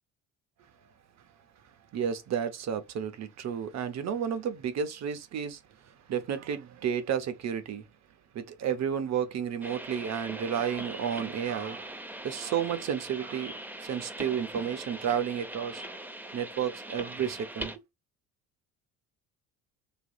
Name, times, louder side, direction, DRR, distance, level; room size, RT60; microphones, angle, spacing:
voice 1, 1.9-5.6 6.1-7.8 8.3-12.0 12.2-17.7, right 8 dB, 40° right, 0.7 m, -32 dB
sound 1, 9.6-17.8, right 1 dB, 5° right, 0.5 m, -41 dB
3.3 x 2.4 x 2.3 m
hypercardioid pair, 60°, 41 cm